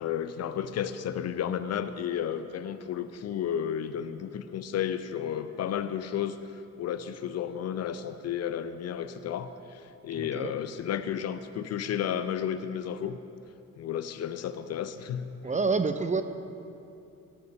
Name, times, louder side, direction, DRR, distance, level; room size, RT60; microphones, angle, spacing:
voice 1, 0.0-13.2 13.8-15.3, left 9 dB, 40° left, 11 dB, 0.6 m, -32 dB
voice 2, 10.1-10.5 15.4-16.2, right 4 dB, 20° right, 10 dB, 0.6 m, -27 dB
17.0 x 6.6 x 6.7 m, 2.7 s
figure-of-eight pair, 45°, 42 cm